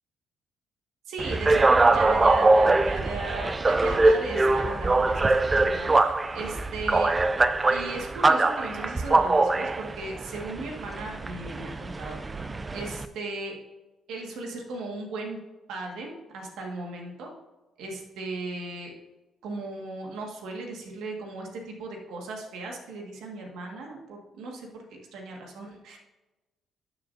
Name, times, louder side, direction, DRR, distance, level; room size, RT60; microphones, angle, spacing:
voice 1, 1.1-7.1 7.7-12.2 12.7-13.6 14.1-15.4 15.7-17.3 17.8-18.9 19.4-26.0, right 2 dB, 85° right, 1 dB, 1.8 m, -37 dB
sound 1, 1.2-13.1, right 2 dB, 25° right, 0.5 m, -23 dB
13.0 x 7.1 x 2.7 m, 1.1 s
cardioid pair, 90°, 0 cm